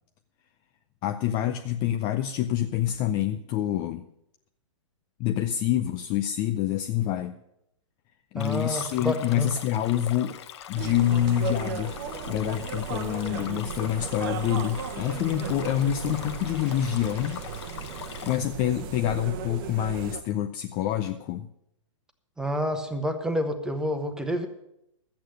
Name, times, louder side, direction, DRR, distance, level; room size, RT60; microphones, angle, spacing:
voice 1, 1.0-4.0 5.2-7.3 8.3-10.4 10.7-11.9 12.3-17.4 18.2-21.5, left 11 dB, 25° left, 8 dB, 0.4 m, -27 dB
voice 2, 8.3-9.5 22.4-24.5, equal, 5° right, 7 dB, 1.0 m, -29 dB
Stream, 8.4-18.4, left 10 dB, 55° left, 1.0 m, -42 dB
sound 1, 10.7-20.2, right 7 dB, 40° right, 1.0 m, -36 dB
12.5 x 8.6 x 6.4 m, 0.81 s
hypercardioid pair, 140°, 17 cm